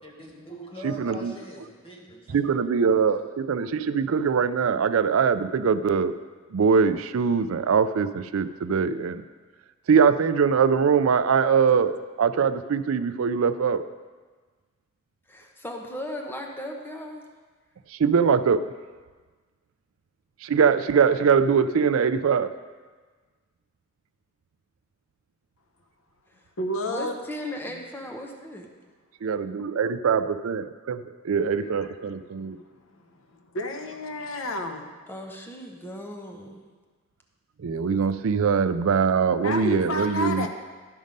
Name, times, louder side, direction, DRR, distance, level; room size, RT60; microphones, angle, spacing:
voice 1, 0.0-2.4 2.8-3.1, right 1 dB, 30° left, -1 dB, 1.6 m, -42 dB
voice 2, 0.8-1.3 2.3-6.2 6.5-9.2 9.9-13.9 17.9-18.6 20.4-22.5 29.2-32.6 37.6-40.5, right 6 dB, 85° right, 13 dB, 0.4 m, -22 dB
voice 3, 15.3-17.2 26.9-28.7 35.1-36.6, left 1 dB, 10° left, 2 dB, 0.9 m, -37 dB
voice 4, 26.6-27.2 32.3-32.8 33.1-34.9 39.4-40.5, left 1 dB, 80° left, 5 dB, 0.8 m, -31 dB
12.5 x 5.3 x 5.2 m, 1.4 s
head